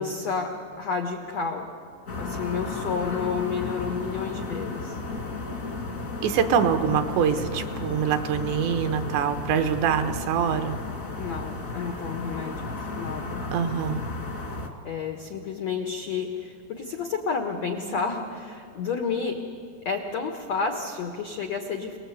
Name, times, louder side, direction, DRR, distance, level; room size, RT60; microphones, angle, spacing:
voice 1, 0.0-1.7 2.2-5.0 11.2-13.5 14.8-19.5 19.8-22.0, left 5 dB, 85° left, 4 dB, 1.5 m, -31 dB
sound 1, 2.1-14.7, left 3 dB, 50° left, 1.0 m, -34 dB
voice 2, 6.2-10.8 13.5-14.0, right 7 dB, 75° right, 7 dB, 3.3 m, -24 dB
28.0 x 19.0 x 8.1 m, 2.3 s
omnidirectional pair, 5.2 m